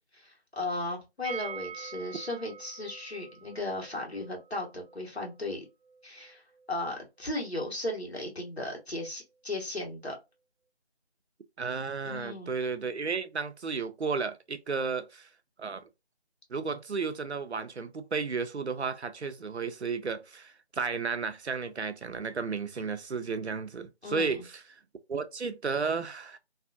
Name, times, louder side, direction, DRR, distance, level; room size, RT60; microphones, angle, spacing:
voice 1, 0.1-5.6 6.0-6.4 6.7-10.2 12.0-12.5 24.0-24.4, left 2 dB, 70° left, 1.4 m, -36 dB
sound 1, 1.2-7.0 7.3-7.4 7.6-7.7, right 7 dB, 30° left, 1.5 m, -45 dB
voice 2, 11.6-15.3 15.6-15.8 16.5-24.6 25.1-26.4, right 5 dB, 85° right, 0.6 m, -33 dB
2.7 x 2.5 x 2.4 m
figure-of-eight pair, 175°, 33 cm